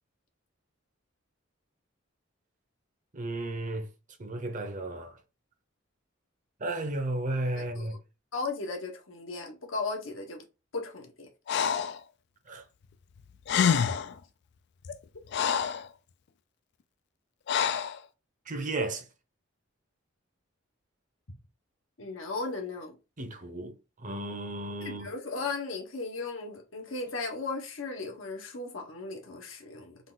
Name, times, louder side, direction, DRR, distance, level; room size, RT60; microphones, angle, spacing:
voice 1, 3.1-3.9 4.2-5.2 6.6-8.0 12.5-12.6 18.5-19.1 23.2-23.7 24.0-25.1, right 2 dB, 40° right, 0.8 m, -33 dB
voice 2, 8.3-10.4 10.7-11.3 15.4-15.5 22.0-22.9 24.8-30.0, left 3 dB, 75° left, 1.1 m, -36 dB
Breathing, 11.5-12.0 13.2-13.3 13.5-14.2 14.8-15.9 17.5-18.0, left 7 dB, 60° left, 0.3 m, -27 dB
3.9 x 2.5 x 3.8 m
head